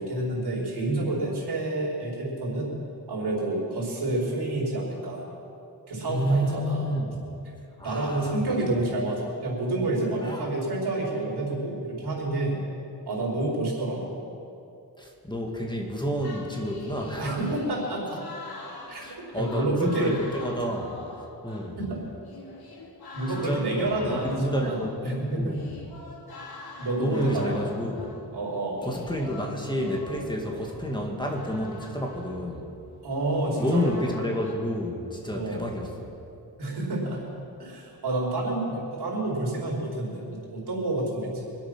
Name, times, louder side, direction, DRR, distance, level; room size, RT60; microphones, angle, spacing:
voice 1, 0.0-2.7 3.1-5.2 5.9-6.9 7.8-12.6 13.0-14.2 17.2-18.3 18.9-19.0 19.3-20.1 21.8-22.0 23.1-24.8 25.0-25.6 26.8-27.5 28.3-28.9 33.0-33.9 35.3-35.7 36.6-37.3 37.6-41.5, right 2 dB, 85° right, -4 dB, 4.6 m, -29 dB
voice 2, 6.1-7.2 7.8-8.7 10.2-10.5 15.0-17.5 19.0-20.9 21.4-21.8 23.3-25.6 27.0-28.1 28.8-32.7 33.6-35.9 41.3-41.6, equal, 10° left, 0 dB, 2.2 m, -30 dB
sound 1, 16.2-21.8 22.1-34.5, left 3 dB, 70° left, 2.4 m, -44 dB
25.0 x 8.3 x 6.1 m, 2.7 s
wide cardioid pair, 95°, 39 cm